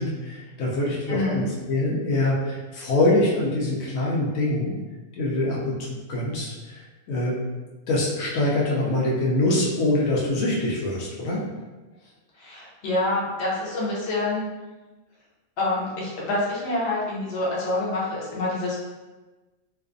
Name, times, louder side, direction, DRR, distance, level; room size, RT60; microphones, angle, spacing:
voice 1, 0.0-4.7 5.2-6.8 7.1-7.4 7.9-11.4, left 1 dB, 85° left, -4 dB, 1.0 m, -24 dB
voice 2, 1.1-1.4 12.4-14.4 15.6-18.8, left 2 dB, 55° left, -5 dB, 0.9 m, -27 dB
2.5 x 2.4 x 2.4 m, 1.2 s
omnidirectional pair, 1.4 m